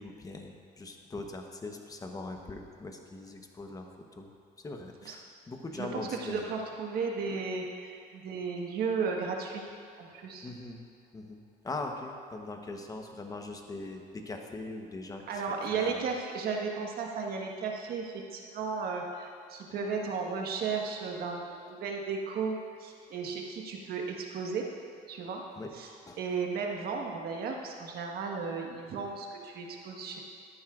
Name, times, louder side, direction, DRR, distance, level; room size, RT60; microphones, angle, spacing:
voice 1, 0.0-4.3 4.6-6.5 10.4-10.8 11.1-15.4 15.7-16.0 25.6-25.7 26.1-26.2, left 2 dB, 20° left, 3 dB, 1.0 m, -41 dB
voice 2, 5.7-9.7 10.0-10.5 15.3-24.7 25.1-25.4 25.7-25.9 26.2-30.2, right 5 dB, 65° right, 1 dB, 1.5 m, -34 dB
13.5 x 10.5 x 2.5 m, 2.5 s
cardioid pair, 110°, 17 cm